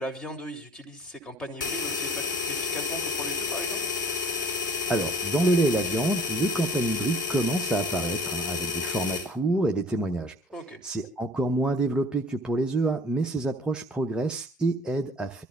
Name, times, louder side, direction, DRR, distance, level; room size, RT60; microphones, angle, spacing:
voice 1, 0.0-3.8 10.5-10.8, right 1 dB, 10° left, 2.9 m, -38 dB
sound 1, 1.6-9.3, left 6 dB, 80° left, 3.0 m, -31 dB
voice 2, 4.9-10.3 10.8-15.4, right 2 dB, 10° right, 0.8 m, -27 dB
25.5 x 13.5 x 2.4 m
figure-of-eight pair, 90°, 10 cm